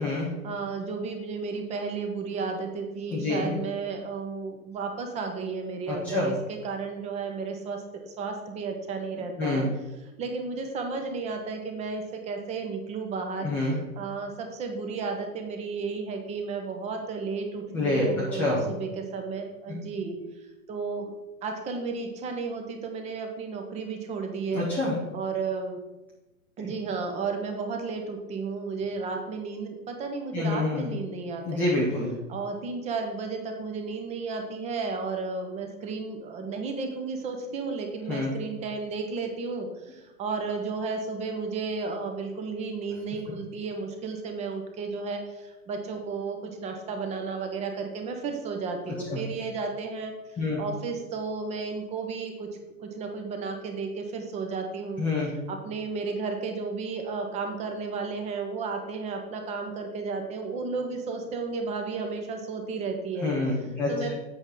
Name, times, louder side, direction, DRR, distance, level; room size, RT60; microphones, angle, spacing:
voice 1, 0.4-9.6 10.2-13.5 14.0-20.2 20.7-21.1 21.4-24.6 25.1-25.8 26.6-31.8 32.3-50.1 50.6-52.5 52.8-55.0 55.5-63.3 63.9-64.1, right 4 dB, 15° right, 4 dB, 0.8 m, -33 dB
voice 2, 3.1-3.5 5.9-6.3 9.4-9.7 13.4-13.8 17.7-18.6 24.5-24.9 30.3-30.9 31.4-32.1 38.1-38.3 48.9-49.2 50.4-50.6 55.0-55.3 63.2-64.1, left 2 dB, 5° left, -7 dB, 0.4 m, -27 dB
8.0 x 5.8 x 3.8 m, 1.1 s
hypercardioid pair, 130°, 43 cm